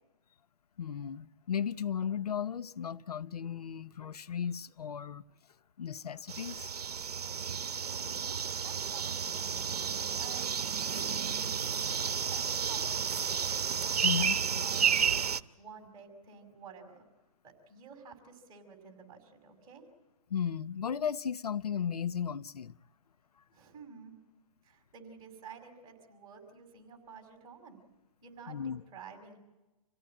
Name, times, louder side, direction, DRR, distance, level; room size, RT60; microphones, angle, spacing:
voice 1, 0.8-5.2 5.8-6.7 14.0-14.4 20.3-22.7 28.5-28.8, left 8 dB, 90° left, 0.8 m, -35 dB
sound 1, 6.3-15.4, right 7 dB, 85° right, 0.9 m, -32 dB
voice 2, 7.5-8.2 8.6-10.6 10.9-11.5 12.0-13.6 13.9-17.1 17.4-19.8 23.5-24.1 24.6-27.8 28.2-29.4, right 6 dB, 20° right, 5.4 m, -51 dB
27.5 x 17.0 x 8.8 m
hypercardioid pair, 145°, 19 cm